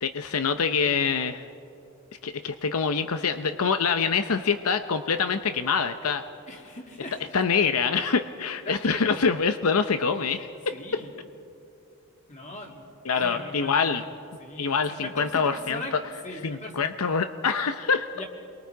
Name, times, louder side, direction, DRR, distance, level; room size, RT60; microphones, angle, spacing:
voice 1, 0.0-1.4 2.2-6.2 7.3-11.0 13.1-14.0 14.6-16.0 16.4-18.1, left 5 dB, 85° left, 9 dB, 0.7 m, -25 dB
voice 2, 6.5-7.3 8.6-9.4 10.7-11.1 12.3-12.9 13.1-14.0 14.4-16.0 16.2-16.8 18.1-18.2, left 2 dB, 35° left, 1 dB, 2.6 m, -39 dB
28.5 x 22.5 x 4.6 m, 2.7 s
head